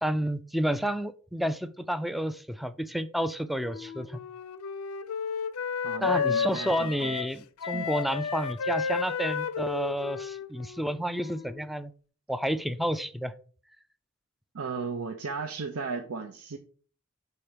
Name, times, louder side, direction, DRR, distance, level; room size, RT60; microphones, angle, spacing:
voice 1, 0.0-4.2 6.0-11.9 12.3-13.3, equal, ahead, 12 dB, 0.3 m, -30 dB
Wind instrument woodwind instrument, 3.6-11.6, left 6 dB, 85° left, 0.5 m, -32 dB
voice 2, 5.8-7.1 7.7-7.9 14.5-16.6, right 4 dB, 80° right, 4 dB, 0.7 m, -35 dB
5.8 x 4.2 x 5.0 m, 0.42 s
head